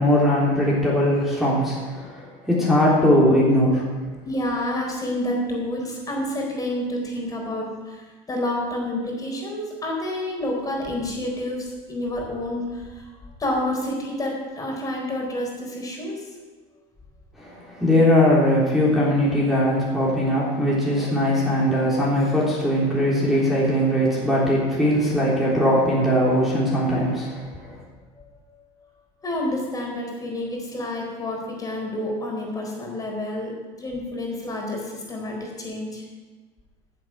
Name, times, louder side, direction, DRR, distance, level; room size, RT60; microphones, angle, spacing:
voice 1, 0.0-3.8 17.4-27.7, equal, ahead, -6 dB, 3.5 m, -20 dB
voice 2, 2.0-2.3 4.2-13.1 13.4-16.3 28.2-28.3 29.2-33.5 33.8-36.0, left 1 dB, 25° left, -1 dB, 4.2 m, -29 dB
14.0 x 7.9 x 6.3 m, 1.4 s
supercardioid pair, 110°, 15 cm